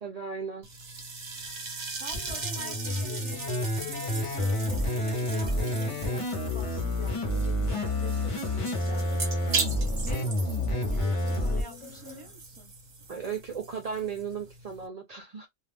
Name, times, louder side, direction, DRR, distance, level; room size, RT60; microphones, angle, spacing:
voice 1, 0.0-0.7 13.1-15.5, right 6 dB, 70° right, 0.3 m, -35 dB
sound 1, 0.6-14.9, right 4 dB, 45° right, 0.7 m, -39 dB
voice 2, 1.9-3.4 3.8-12.7, right 2 dB, 10° left, 0.8 m, -47 dB
sound 2, 2.1-11.6, left 1 dB, 35° left, 0.5 m, -29 dB
sound 3, 2.6-12.3, left 9 dB, 65° left, 0.8 m, -46 dB
2.3 x 2.2 x 3.3 m
omnidirectional pair, 1.4 m